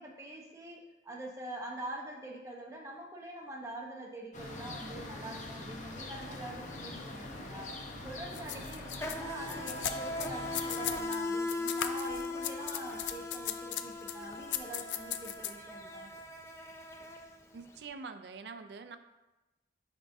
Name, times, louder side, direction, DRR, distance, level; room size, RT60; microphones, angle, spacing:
voice 1, 0.0-7.7 8.0-16.1, right 1 dB, 15° right, -1 dB, 0.8 m, -45 dB
sound 1, 4.3-11.0, left 2 dB, 45° left, 0.7 m, -44 dB
Insect, 6.3-6.5 6.8-17.8, left 2 dB, 15° left, 0.4 m, -40 dB
sound 2, 8.3-11.2 11.5-15.5, left 11 dB, 90° left, 0.4 m, -38 dB
voice 2, 17.5-19.0, right 4 dB, 65° right, 9 dB, 0.4 m, -45 dB
9.9 x 3.6 x 2.6 m, 1.0 s
head